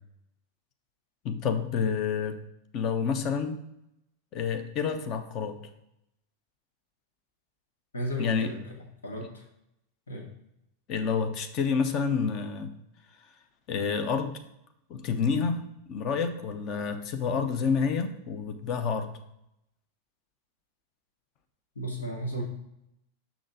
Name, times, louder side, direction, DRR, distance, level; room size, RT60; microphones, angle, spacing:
voice 1, 1.2-2.4 2.7-3.6 4.3-5.6 8.2-8.5 10.9-12.7 13.7-14.4 14.9-15.6 15.9-19.1, left 6 dB, 35° left, 8 dB, 0.8 m, -28 dB
voice 2, 7.9-8.6 9.0-9.4 10.1-10.3 21.7-22.4, equal, 70° left, 0 dB, 1.3 m, -34 dB
6.3 x 5.9 x 3.8 m, 0.83 s
figure-of-eight pair, 90°, 0 cm